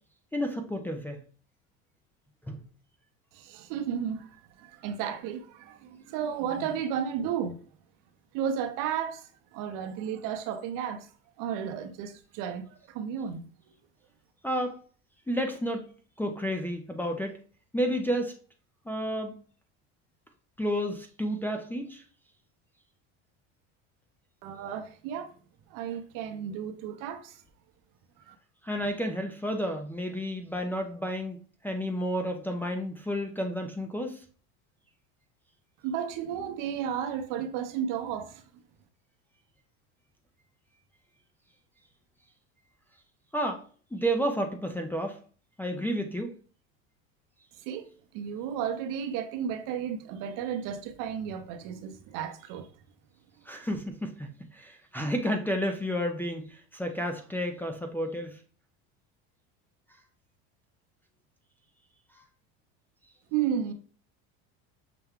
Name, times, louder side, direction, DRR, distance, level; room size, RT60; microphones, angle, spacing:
voice 1, 0.3-1.2 2.4-2.6 14.4-14.8 15.3-15.9 16.2-17.4 17.7-18.4 18.9-19.3 20.6-22.0 28.6-31.4 31.6-34.2 43.3-43.6 43.9-45.2 45.6-46.3 53.5-58.4, equal, 5° left, 0.4 m, -31 dB
voice 2, 3.3-7.6 8.3-11.1 11.4-13.4 24.4-25.3 25.7-27.4 28.2-28.4 35.8-38.4 47.6-47.9 48.1-52.7 63.3-63.7, right 8 dB, 65° right, 0.8 m, -33 dB
5.8 x 2.3 x 3.5 m
supercardioid pair, 115°, 34 cm